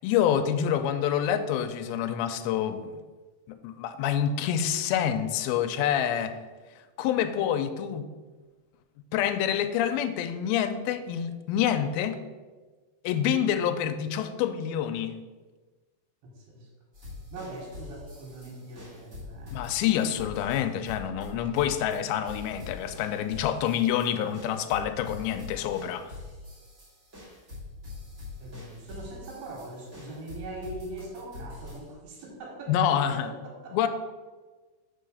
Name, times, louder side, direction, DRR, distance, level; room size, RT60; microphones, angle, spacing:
voice 1, 0.0-3.0 3.5-6.4 7.0-8.1 9.1-12.2 13.0-15.2 19.5-26.1 32.7-33.3 33.7-33.9, left 9 dB, 80° left, 9 dB, 2.3 m, -27 dB
voice 2, 16.2-16.7 17.3-19.6 28.4-33.8, right 2 dB, 80° right, -2 dB, 3.4 m, -42 dB
sound 1, 16.9-31.9, left 3 dB, 30° right, 1.9 m, -44 dB
5.2 x 4.7 x 6.3 m, 1.3 s
omnidirectional pair, 4.5 m